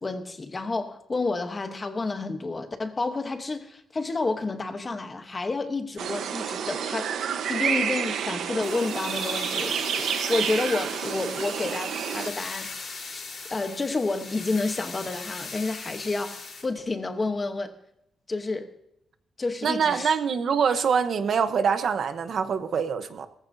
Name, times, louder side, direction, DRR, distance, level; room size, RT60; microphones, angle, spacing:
voice 1, 0.0-7.1 7.5-13.2 13.5-17.7 18.3-18.7 19.4-20.1, left 3 dB, 20° left, 1.0 m, -30 dB
sound 1, 6.0-12.3, right 8 dB, 75° right, 1.0 m, -29 dB
sound 2, 8.6-16.6, left 4 dB, 40° left, 3.8 m, -39 dB
voice 2, 19.6-23.3, right 6 dB, 50° right, 0.9 m, -24 dB
18.5 x 14.5 x 2.7 m
wide cardioid pair, 170°, 0 cm